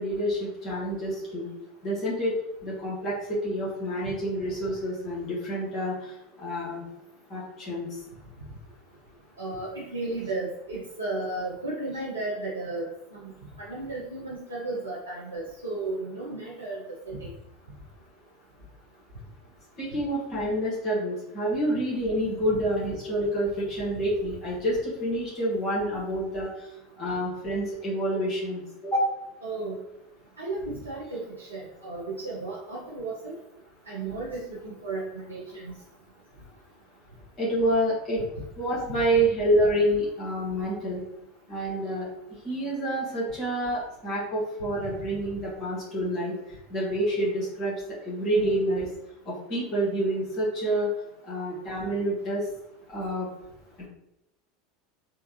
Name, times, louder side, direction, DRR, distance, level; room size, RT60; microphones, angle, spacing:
voice 1, 0.0-1.5 1.8-6.8 7.3-8.0 19.8-26.7 27.0-29.0 37.4-38.3 38.6-41.0 41.5-42.1 42.4-46.3 46.7-47.7 48.0-48.9 49.2-50.9 51.2-52.4 52.9-53.3, right 1 dB, 35° left, -7 dB, 1.5 m, -28 dB
voice 2, 9.4-13.3 13.6-16.8 17.1-17.3 29.4-29.7 30.4-33.3 33.9-35.7, right 2 dB, 85° right, -6 dB, 0.6 m, -34 dB
3.6 x 2.3 x 3.0 m, 0.88 s
figure-of-eight pair, 75°, 0 cm